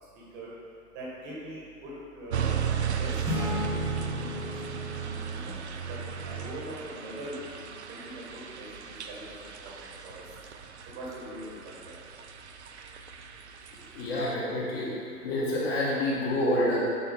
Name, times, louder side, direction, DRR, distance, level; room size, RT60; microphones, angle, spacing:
voice 1, 0.1-0.5 0.9-2.6 3.0-4.7 5.2-5.6 5.9-6.0 6.2-8.2 8.5-9.3 9.6-10.2 10.9-11.5 11.9-12.0, right 1 dB, 20° right, -6 dB, 1.2 m, -42 dB
sound 1, 2.3-14.3, right 8 dB, 45° right, 0.4 m, -36 dB
sound 2, 3.2-6.0, left 3 dB, 5° right, 1.3 m, -35 dB
voice 2, 13.9-14.9 15.2-16.8, left 1 dB, 40° left, -6 dB, 1.6 m, -27 dB
9.6 x 4.3 x 3.5 m, 2.4 s
figure-of-eight pair, 115°, 47 cm